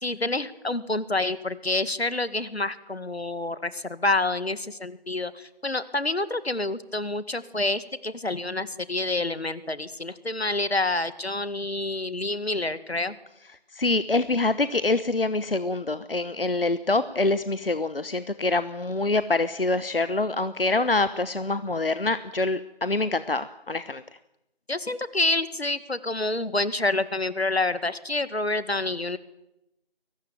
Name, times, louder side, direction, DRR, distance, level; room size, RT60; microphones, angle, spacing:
voice 1, 0.0-13.1 24.7-29.2, left 2 dB, 85° left, 14 dB, 2.1 m, -28 dB
voice 2, 13.7-24.0, left 2 dB, 65° left, 13 dB, 1.1 m, -25 dB
23.0 x 19.0 x 9.2 m, 0.87 s
figure-of-eight pair, 175°, 31 cm